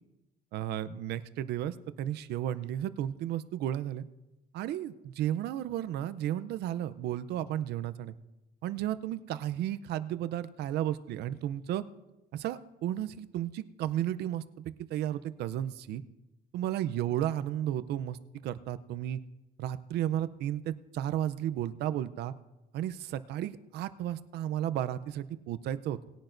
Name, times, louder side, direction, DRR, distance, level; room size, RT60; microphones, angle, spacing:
voice 1, 0.5-4.0 4.5-8.1 8.6-11.8 12.3-16.0 16.5-18.2 18.4-19.2 19.6-22.3 22.7-26.0, right 11 dB, 75° right, 13 dB, 0.6 m, -33 dB
19.5 x 10.5 x 2.6 m, 0.99 s
cardioid pair, 110°, 17 cm